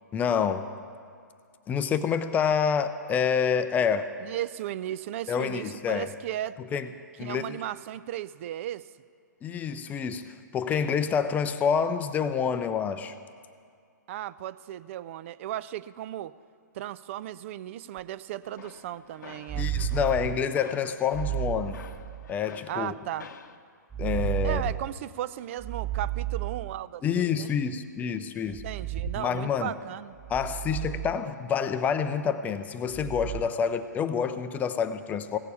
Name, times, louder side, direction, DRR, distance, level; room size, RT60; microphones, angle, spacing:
voice 1, 0.1-0.7 1.7-4.1 5.3-6.1 6.7-6.9 7.2-7.6 9.4-13.1 19.6-21.8 22.3-22.9 24.0-24.6 27.0-28.6 29.2-29.7 30.3-35.4, left 7 dB, 15° left, 10 dB, 0.5 m, -27 dB
voice 2, 4.2-6.6 7.2-8.9 14.1-16.3 16.7-19.7 22.7-23.3 24.4-27.5 28.4-30.2, right 12 dB, 40° right, 17 dB, 0.4 m, -36 dB
sound 1, 18.0-18.1 19.5-20.5 21.1-22.3 23.9-24.9 25.6-26.8 28.5-29.2 30.2-31.1 32.9-33.4, right 11 dB, 10° right, 4.2 m, -32 dB
sound 2, 18.4-23.6, left 6 dB, 70° left, 0.8 m, -49 dB
16.5 x 6.8 x 8.4 m, 2.2 s
hypercardioid pair, 130°, 10 cm